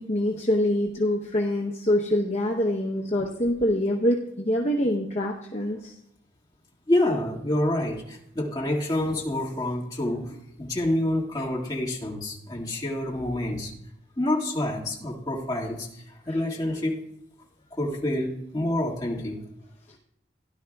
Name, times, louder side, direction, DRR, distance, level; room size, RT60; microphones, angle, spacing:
voice 1, 0.0-5.9 16.3-16.4 18.6-18.7, left 1 dB, 40° left, -1 dB, 0.9 m, -25 dB
voice 2, 6.9-13.7 14.2-17.0 17.7-19.4, left 1 dB, 20° left, -3 dB, 2.0 m, -27 dB
16.5 x 11.5 x 2.3 m, 0.77 s
head